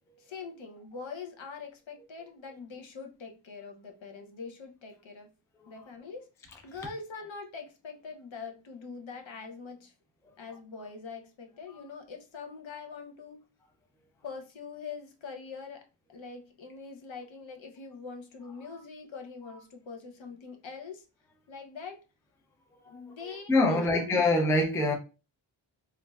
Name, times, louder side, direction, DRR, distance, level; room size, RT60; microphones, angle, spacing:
voice 1, 0.2-5.3 5.7-9.9 10.4-13.4 14.2-21.1 21.5-22.0 22.9-24.4, left 5 dB, 65° left, 0.7 m, -43 dB
voice 2, 23.2-24.9, left 2 dB, 5° left, 0.3 m, -25 dB
3.0 x 2.5 x 2.2 m
wide cardioid pair, 130°, 49 cm